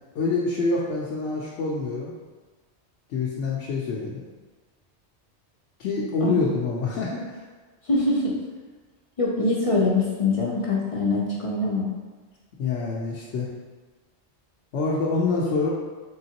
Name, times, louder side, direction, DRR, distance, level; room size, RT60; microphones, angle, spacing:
voice 1, 0.1-2.1 3.1-4.2 5.8-7.4 12.6-13.5 14.7-15.7, left 3 dB, 80° left, -4 dB, 0.9 m, -26 dB
voice 2, 7.8-8.4 9.2-11.9, left 2 dB, 45° left, -4 dB, 0.5 m, -23 dB
3.8 x 3.5 x 2.8 m, 1.3 s
omnidirectional pair, 1.1 m